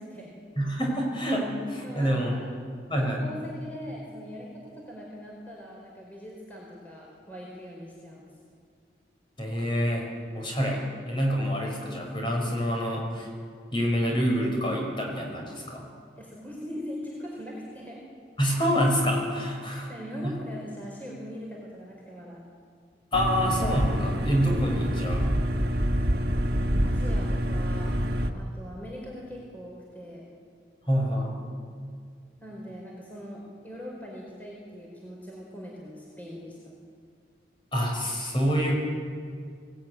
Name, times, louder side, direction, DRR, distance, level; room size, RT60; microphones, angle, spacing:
voice 1, 0.0-0.4 1.8-2.4 3.0-8.3 16.2-18.0 19.9-22.4 26.8-28.0 28.3-30.2 32.4-36.7, equal, 10° left, -4 dB, 4.3 m, -41 dB
voice 2, 0.6-2.4 2.9-3.2 9.4-13.3 13.7-15.9 18.4-19.9 20.2-20.4 23.1-25.3 30.9-31.4 37.7-38.8, equal, 25° left, 0 dB, 5.6 m, -27 dB
sound 1, 23.1-28.3, equal, 60° right, 1.8 m, -26 dB
23.0 x 17.5 x 9.5 m, 2.1 s
head